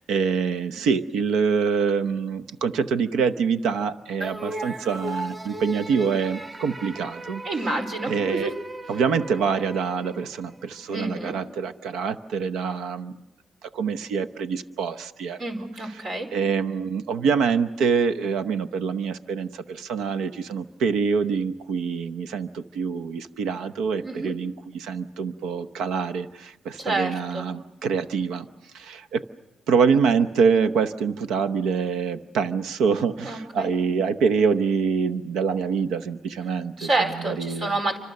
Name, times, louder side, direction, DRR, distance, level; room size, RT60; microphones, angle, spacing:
voice 1, 0.0-7.4 8.1-8.5 8.9-13.2 13.6-15.4 15.9-16.0 16.3-28.5 28.7-29.2 29.7-37.8, right 5 dB, 85° right, 9 dB, 0.8 m, -25 dB
sound 1, 4.2-10.8, right 1 dB, 30° right, 1.3 m, -37 dB
voice 2, 7.4-8.5 10.9-11.3 15.4-16.3 24.0-24.3 26.8-27.5 33.2-33.7 36.8-38.0, right 2 dB, 65° right, 4 dB, 4.7 m, -28 dB
29.5 x 25.5 x 6.6 m, 0.96 s
supercardioid pair, 50°, 0 cm